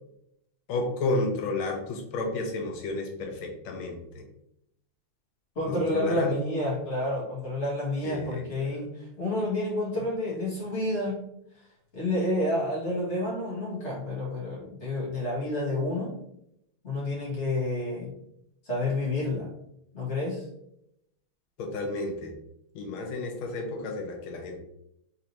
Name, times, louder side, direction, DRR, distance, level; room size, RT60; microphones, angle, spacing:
voice 1, 0.7-4.2 5.7-6.3 8.0-8.4 21.6-22.3 22.7-24.6, left 2 dB, 75° left, 3 dB, 1.5 m, -31 dB
voice 2, 5.6-8.9 9.2-11.2 11.9-16.1 16.8-18.1 18.7-19.5 19.9-20.4, left 1 dB, 35° left, -6 dB, 1.7 m, -29 dB
4.2 x 3.7 x 2.9 m, 0.77 s
omnidirectional pair, 2.4 m